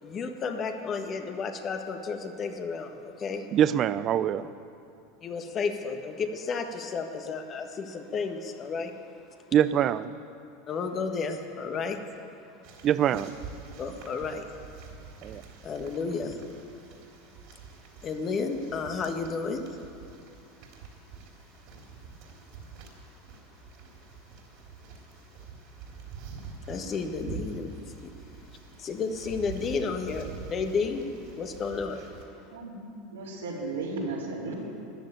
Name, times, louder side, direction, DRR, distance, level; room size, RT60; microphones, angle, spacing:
voice 1, 0.0-3.5 5.2-8.9 10.7-12.0 13.8-14.5 15.6-16.4 18.0-19.8 26.7-28.5 28.8-31.1 31.4-32.0, left 5 dB, 35° left, 5 dB, 1.5 m, -32 dB
voice 2, 3.5-4.5 9.5-10.1 12.8-13.4 15.2-15.4, right 10 dB, 45° right, 15 dB, 0.6 m, -24 dB
sound 1, 12.6-32.3, right 5 dB, 60° right, 3.3 m, -46 dB
voice 3, 32.5-34.5, right 3 dB, 85° right, -4 dB, 3.9 m, -35 dB
14.0 x 10.0 x 8.7 m, 2.7 s
hypercardioid pair, 90°, 0 cm